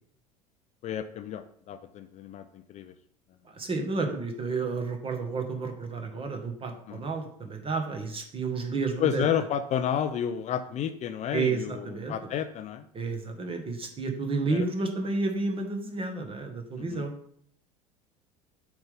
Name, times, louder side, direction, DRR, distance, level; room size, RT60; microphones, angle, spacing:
voice 1, 0.8-2.9 6.9-7.0 9.0-12.9 14.5-14.7 16.7-17.0, left 9 dB, 35° left, 10 dB, 0.6 m, -31 dB
voice 2, 3.4-9.4 11.3-12.1 12.9-17.1, right 4 dB, 30° right, 4 dB, 1.5 m, -31 dB
7.8 x 3.5 x 5.4 m, 0.64 s
figure-of-eight pair, 75°, 19 cm